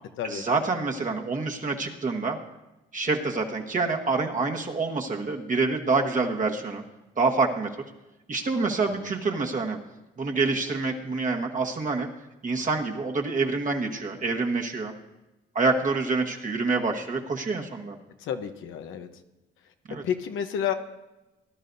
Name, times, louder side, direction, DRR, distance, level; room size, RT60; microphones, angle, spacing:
voice 1, 0.2-2.4 2.9-6.8 7.2-7.7 8.3-9.8 10.2-12.1 12.4-14.9 15.5-18.0 19.9-20.0, right 3 dB, 40° right, 2 dB, 1.4 m, -27 dB
voice 2, 18.2-19.1 20.0-20.7, left 9 dB, 85° left, 6 dB, 0.9 m, -30 dB
18.5 x 11.0 x 2.7 m, 1.0 s
cardioid pair, 90°, 20 cm